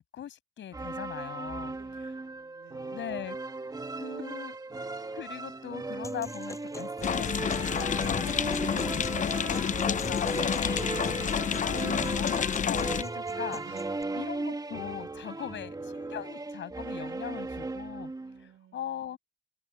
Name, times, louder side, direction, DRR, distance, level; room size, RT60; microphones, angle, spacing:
voice 1, 0.0-2.1 2.9-3.4 4.0-4.5 5.1-13.6 14.1-18.1 18.7-19.2, left 10 dB, 70° left, 7.7 m, -40 dB
sound 1, 0.7-18.4, right 3 dB, 20° right, 2.3 m, -37 dB
voice 2, 1.7-3.3 4.3-4.4 13.6-14.2 18.2-19.2, right 12 dB, 80° right, 5.2 m, -56 dB
sound 2, 6.0-14.0, left 2 dB, 15° left, 7.9 m, -46 dB
sound 3, 7.0-13.0, left 7 dB, 40° left, 0.6 m, -29 dB
cardioid pair, 90°, 20 cm